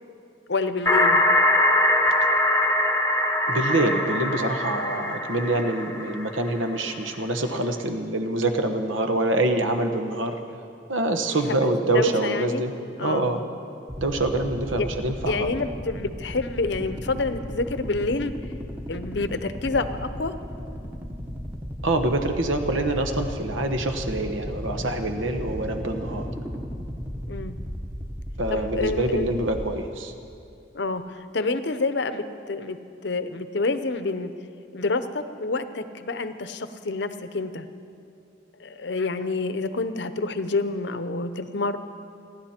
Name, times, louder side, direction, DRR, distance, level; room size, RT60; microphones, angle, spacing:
voice 1, 0.5-1.2 11.5-11.6 11.9-12.6 13.0-13.3 14.8-14.9 15.3-18.3 18.9-20.3 27.3-27.6 28.5-29.3 30.7-32.8 33.0-34.3 34.7-37.7 38.6-41.8, left 3 dB, 65° left, 10 dB, 0.8 m, -28 dB
sound 1, 0.9-6.6, left 1 dB, 15° left, 0.8 m, -22 dB
voice 2, 3.5-10.4 10.9-12.7 13.0-13.4 14.0-15.5 21.8-26.3 28.4-30.1, right 2 dB, 85° right, 6 dB, 1.2 m, -25 dB
sound 2, 13.9-29.7, equal, 10° right, 0.9 m, -35 dB
29.5 x 11.0 x 4.4 m, 2.5 s
head